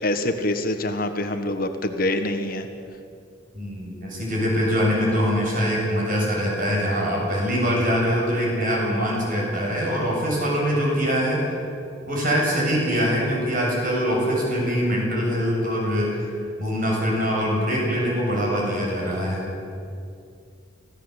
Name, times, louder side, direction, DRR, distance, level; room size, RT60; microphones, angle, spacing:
voice 1, 0.0-2.7, left 1 dB, 50° left, 7 dB, 1.5 m, -25 dB
voice 2, 3.5-11.4 12.1-16.2 16.6-19.4, equal, 45° right, -2 dB, 7.6 m, -23 dB
25.5 x 17.0 x 8.3 m, 2.4 s
head